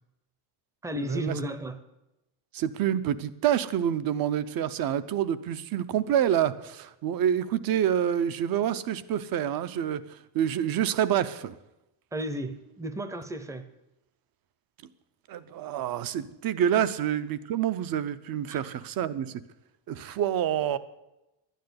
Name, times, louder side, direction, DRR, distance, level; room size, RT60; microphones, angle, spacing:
voice 1, 0.8-1.8 12.1-13.6, right 1 dB, 5° right, 11 dB, 0.6 m, -33 dB
voice 2, 2.5-10.0 10.3-11.6 15.3-19.4 19.9-20.8, right 10 dB, 45° right, 15 dB, 0.7 m, -27 dB
12.5 x 9.3 x 9.5 m, 0.95 s
cardioid pair, 170°, 50 cm